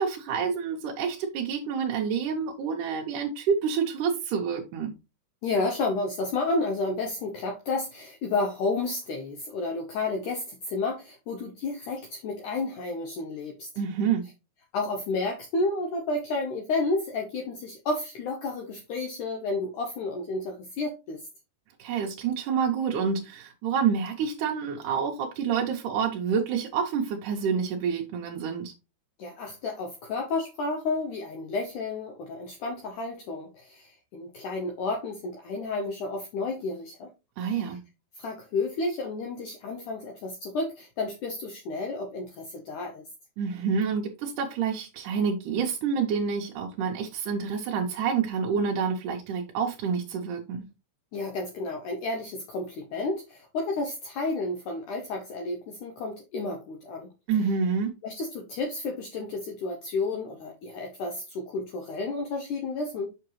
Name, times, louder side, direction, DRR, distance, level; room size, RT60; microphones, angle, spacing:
voice 1, 0.0-4.9 13.8-14.2 21.8-28.7 37.4-37.8 43.4-50.6 57.3-57.9, right 6 dB, 70° right, 0 dB, 2.1 m, -28 dB
voice 2, 5.4-13.7 14.7-21.2 29.2-37.1 37.4-37.7 38.2-43.0 51.1-57.1 58.0-63.1, left 3 dB, 70° left, 2 dB, 2.1 m, -31 dB
6.8 x 5.8 x 3.1 m, 0.27 s
omnidirectional pair, 4.4 m